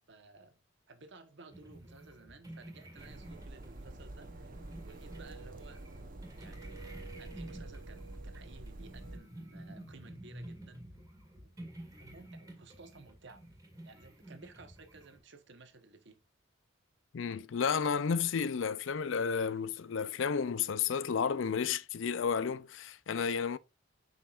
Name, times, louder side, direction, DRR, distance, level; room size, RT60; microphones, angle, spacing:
voice 1, 0.1-0.6 0.9-5.9 6.4-10.9 11.4-11.5 12.0-13.5 13.8-16.2, right 3 dB, 60° right, 1.1 m, -56 dB
sound 1, 1.5-15.2, right 1 dB, 15° right, 2.0 m, -51 dB
sound 2, 3.0-9.2, right 2 dB, 45° right, 0.9 m, -47 dB
voice 2, 17.1-23.6, left 6 dB, 65° left, 0.4 m, -32 dB
7.2 x 5.6 x 2.4 m
head